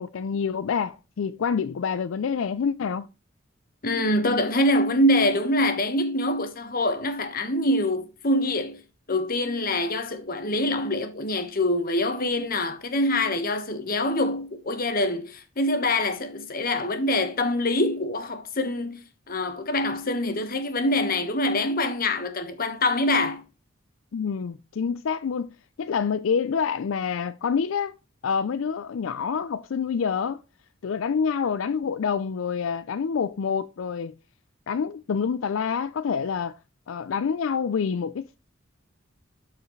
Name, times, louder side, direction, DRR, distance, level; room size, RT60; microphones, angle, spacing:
voice 1, 0.0-3.1 24.1-25.5 25.8-28.0 28.2-30.4 30.8-34.1 34.7-36.6 36.9-38.4, left 6 dB, 80° left, 0.4 m, -27 dB
voice 2, 3.8-8.8 9.1-23.4, left 1 dB, 50° left, 1.3 m, -25 dB
12.0 x 4.8 x 3.1 m
head